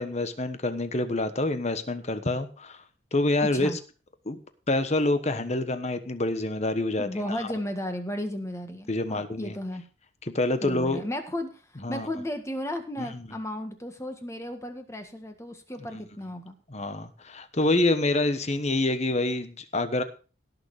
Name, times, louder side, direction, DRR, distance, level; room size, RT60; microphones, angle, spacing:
voice 1, 0.0-2.8 3.1-3.7 4.2-4.4 4.7-7.5 8.9-9.5 10.2-11.0 11.8-12.1 13.0-13.3 15.9-16.0 16.7-20.0, left 2 dB, 35° left, 10 dB, 1.2 m, -27 dB
voice 2, 3.4-3.8 7.0-9.9 10.6-11.6 11.9-16.6, left 1 dB, 15° left, 6 dB, 1.7 m, -34 dB
17.5 x 6.7 x 4.9 m, 0.35 s
head